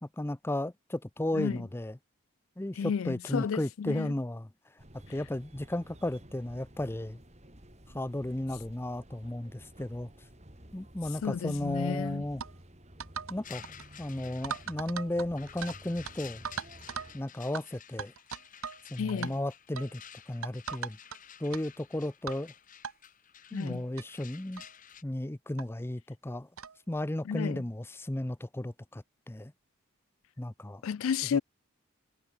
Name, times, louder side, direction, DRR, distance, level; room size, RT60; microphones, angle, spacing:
voice 1, 0.0-2.0 2.6-4.5 5.1-7.2 7.9-10.1 10.7-12.4 13.3-13.6 14.0-16.5 17.1-18.1 18.9-20.0 20.3-21.0 21.4-22.5 23.5-24.6 25.0-26.5 26.9-29.5 30.4-30.8 31.3-31.4, left 1 dB, 10° left, 0.5 m, -34 dB
voice 2, 2.8-4.1 11.2-12.2 19.0-19.3 23.5-23.8 27.2-27.6 30.8-31.4, left 7 dB, 70° left, 0.4 m, -32 dB
sound 1, 4.8-17.2, right 1 dB, 30° right, 4.6 m, -53 dB
sound 2, 12.4-12.5 13.0-13.4 13.6-13.9 14.4-15.8 16.0-16.1 16.4-17.1 17.5-17.6 18.0-18.8 19.1-19.3 19.8-19.9 20.4-21.2 21.5-21.6 22.3-22.4 22.8-22.9 23.7-23.8 24.0-24.1 24.6-24.7 25.6-25.7 26.6-26.8, right 6 dB, 80° right, 1.0 m, -39 dB
sound 3, 13.4-25.0, left 9 dB, 40° left, 1.5 m, -52 dB
head